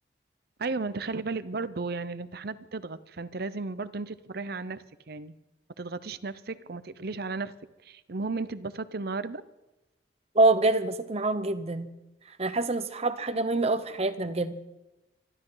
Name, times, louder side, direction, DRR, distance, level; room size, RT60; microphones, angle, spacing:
voice 1, 0.6-5.4 5.8-7.5 7.8-9.4, right 3 dB, 60° right, 14 dB, 0.8 m, -34 dB
voice 2, 10.3-11.9 12.4-14.6, right 2 dB, 35° right, 11 dB, 1.0 m, -25 dB
25.0 x 12.0 x 4.0 m, 1.0 s
head